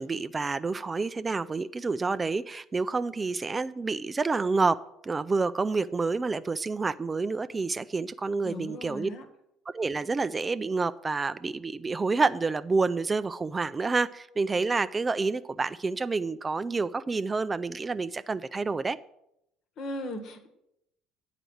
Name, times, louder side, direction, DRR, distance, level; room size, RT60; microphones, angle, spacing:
voice 1, 0.0-4.8 5.0-9.1 9.7-19.0, right 4 dB, 25° right, 0.3 m, -28 dB
voice 2, 8.4-9.3 19.8-20.5, left 1 dB, 55° left, 1.3 m, -37 dB
9.0 x 4.9 x 7.6 m
figure-of-eight pair, 55°, 0 cm